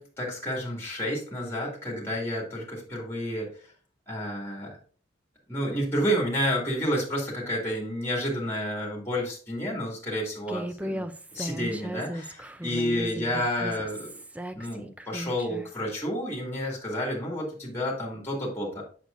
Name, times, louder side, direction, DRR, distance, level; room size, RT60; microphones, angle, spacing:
voice 1, 0.0-3.5 4.1-4.8 5.5-14.1 14.5-18.8, equal, 15° left, -2 dB, 2.3 m, -30 dB
Human voice, 10.5-15.7, right 1 dB, 5° right, 0.4 m, -36 dB
7.8 x 6.3 x 2.5 m, 0.42 s
head